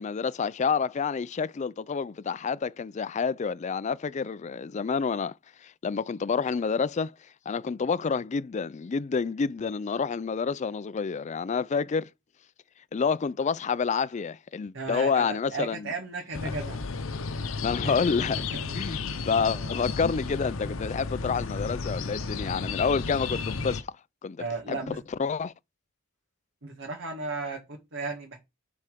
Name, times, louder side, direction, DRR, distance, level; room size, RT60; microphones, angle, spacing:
voice 1, 0.0-5.3 5.6-7.1 7.5-12.1 12.9-15.9 16.5-16.6 17.6-18.4 18.7-19.0 19.3-23.9 24.2-25.5, left 5 dB, 35° left, 0.4 m, -28 dB
voice 2, 14.7-16.8 17.8-18.7 19.5-19.7 24.4-25.0 26.6-28.4, right 3 dB, 65° right, 2.0 m, -35 dB
sound 1, 16.3-23.8, left 4 dB, 75° left, 0.8 m, -33 dB
9.7 x 4.3 x 5.0 m
head